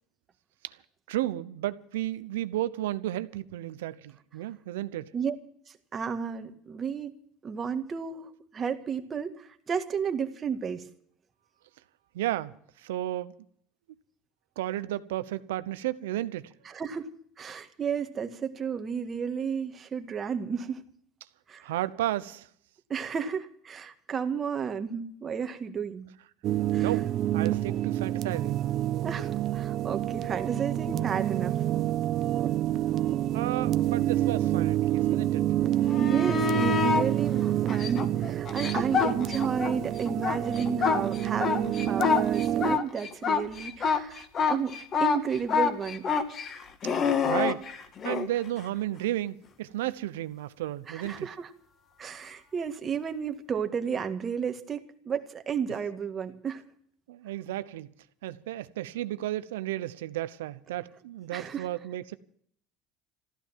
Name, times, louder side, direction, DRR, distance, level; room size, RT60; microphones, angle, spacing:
voice 1, 1.1-5.1 12.1-13.3 14.6-16.5 21.6-22.5 26.8-28.6 33.3-35.5 46.8-46.9 47.2-47.6 48.0-51.3 57.1-57.9 58.2-62.2, right 14 dB, 90° right, 0.9 m, -33 dB
voice 2, 5.9-7.1 7.4-10.8 16.7-17.1 17.4-20.8 21.5-21.6 22.9-26.1 26.7-26.9 29.0-31.6 36.0-46.0 50.9-51.5 52.0-56.6 61.3-61.7, right 6 dB, 35° right, 1.9 m, -32 dB
sound 1, 26.4-42.8, right 13 dB, 50° right, 0.9 m, -28 dB
sound 2, 35.8-37.1 37.7-39.7 40.1-48.3 51.0-51.1, left 6 dB, 40° left, 2.2 m, -27 dB
14.5 x 13.0 x 7.5 m
supercardioid pair, 95°, 0 cm